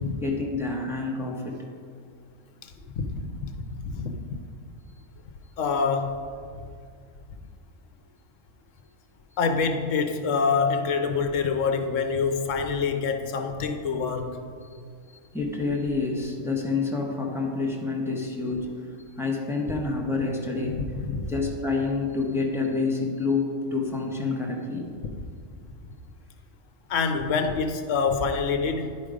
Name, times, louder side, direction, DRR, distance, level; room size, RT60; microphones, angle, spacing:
voice 1, 0.2-1.6 3.2-3.3 14.7-14.8 15.1-18.7 19.2-20.8 21.3-24.9, left 3 dB, ahead, -2 dB, 0.9 m, -28 dB
voice 2, 2.6-3.6 3.8-4.2 5.6-6.3 9.4-14.4 20.7-20.8 21.1-21.3 26.9-29.0, left 5 dB, 70° left, 7 dB, 1.1 m, -26 dB
10.5 x 5.3 x 5.0 m, 2.2 s
omnidirectional pair, 1.4 m